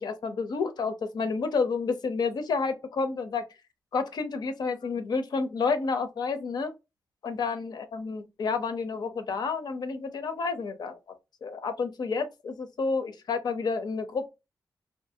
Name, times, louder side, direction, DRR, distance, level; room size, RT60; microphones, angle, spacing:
voice 1, 0.0-3.4 3.9-6.7 7.2-11.0 11.4-14.3, left 4 dB, 85° left, 0.5 m, -30 dB
2.6 x 2.5 x 2.6 m
wide cardioid pair, 100°, 7 cm